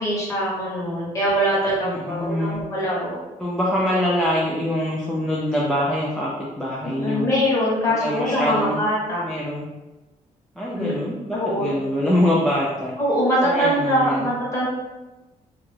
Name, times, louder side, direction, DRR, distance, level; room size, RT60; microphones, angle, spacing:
voice 1, 0.0-3.2 6.8-9.2 10.8-10.9 11.3-11.7 13.0-14.7, equal, 25° left, -6 dB, 1.0 m, -23 dB
voice 2, 1.8-2.6 3.4-7.3 7.9-8.8 9.2-9.7 10.6-13.0 13.4-14.3, left 1 dB, 5° left, -5 dB, 0.3 m, -24 dB
2.5 x 2.3 x 3.2 m, 1.1 s
cardioid pair, 145°, 13 cm